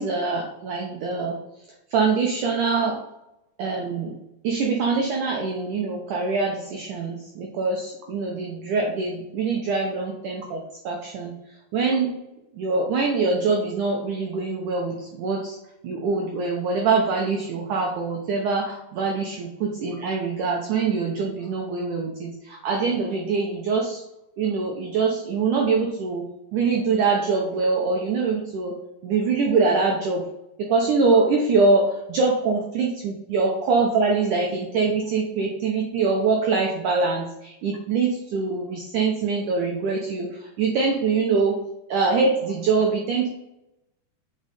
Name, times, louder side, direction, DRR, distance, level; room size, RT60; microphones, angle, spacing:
voice 1, 0.0-1.4 1.9-3.0 3.6-4.1 4.4-11.3 11.7-12.1 12.6-15.6 15.8-24.0 24.4-26.3 26.5-28.8 29.0-30.2 30.6-41.6 41.9-43.3, right 4 dB, 75° right, 0 dB, 1.8 m, -24 dB
8.6 x 5.1 x 4.2 m, 0.89 s
omnidirectional pair, 4.9 m